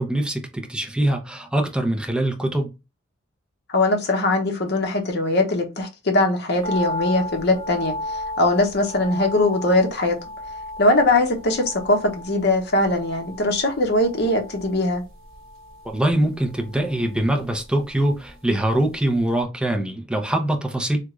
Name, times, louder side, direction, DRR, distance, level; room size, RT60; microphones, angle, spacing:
voice 1, 0.0-2.7 15.8-21.0, right 1 dB, 5° right, 0.6 m, -23 dB
voice 2, 3.7-10.2 10.8-15.0, left 2 dB, 55° left, 0.9 m, -21 dB
sound 1, 6.6-18.9 19.2-19.3, left 2 dB, 80° right, 1.0 m, -35 dB
3.4 x 2.4 x 3.0 m
head